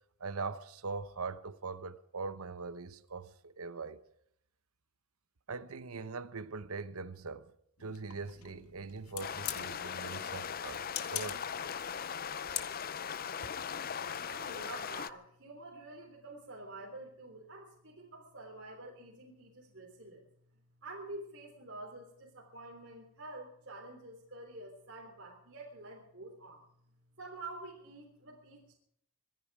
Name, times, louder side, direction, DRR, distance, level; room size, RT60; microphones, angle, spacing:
voice 1, 0.2-4.0 5.5-7.5 7.8-11.4, right 4 dB, 75° right, 0.9 m, -41 dB
sound 1, 7.8-13.1, left 12 dB, 85° left, 1.6 m, -44 dB
sound 2, 9.2-15.1, left 7 dB, 40° left, 0.5 m, -39 dB
voice 2, 14.2-20.2 20.8-26.6 27.2-28.7, right 2 dB, 55° right, 3.6 m, -48 dB
25.5 x 10.5 x 4.9 m
head